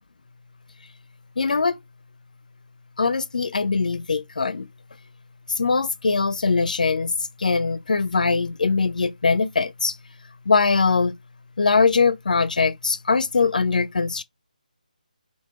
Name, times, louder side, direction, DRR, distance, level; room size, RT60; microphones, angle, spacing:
voice 1, 1.4-1.8 3.0-4.7 5.6-7.1 7.4-10.0 10.5-11.1 11.6-14.2, left 4 dB, 65° left, 0.5 m, -21 dB
3.0 x 2.6 x 3.5 m
figure-of-eight pair, 165°, 5 cm